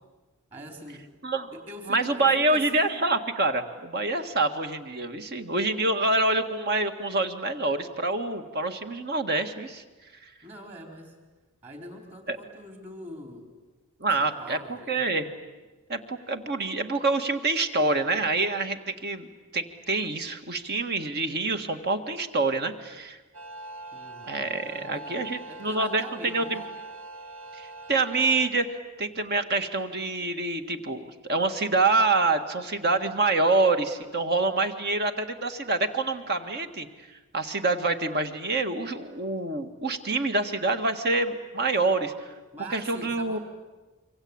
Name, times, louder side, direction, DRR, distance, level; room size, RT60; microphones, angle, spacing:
voice 1, 0.5-1.0 1.5-3.0 10.4-11.1 11.6-13.4 14.2-15.1 23.9-26.6 27.8-27.9 42.5-43.4, right 1 dB, 30° right, 3 dB, 4.3 m, -44 dB
voice 2, 1.9-9.8 10.2-10.3 12.3-12.4 14.0-15.3 15.9-19.3 19.5-23.2 24.3-26.6 27.6-37.1 37.3-42.3 42.7-43.4, right 3 dB, 45° right, 7 dB, 1.9 m, -26 dB
sound 1, 23.3-28.5, right 2 dB, 60° right, 1.6 m, -42 dB
27.0 x 24.5 x 8.8 m, 1.2 s
head